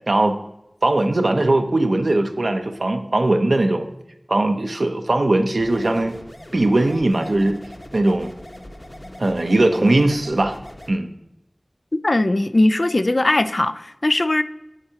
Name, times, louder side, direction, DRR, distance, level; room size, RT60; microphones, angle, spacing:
voice 1, 0.1-0.4 0.8-3.9 4.3-6.2 6.5-7.6 7.9-8.3 9.2-10.6 10.9-11.1, right 2 dB, 80° right, 0.8 m, -19 dB
sound 1, 5.6-11.0, left 1 dB, 35° left, 1.1 m, -40 dB
voice 2, 12.0-14.4, left 2 dB, 60° left, 0.4 m, -19 dB
9.7 x 7.6 x 2.9 m
wide cardioid pair, 45°, 0 cm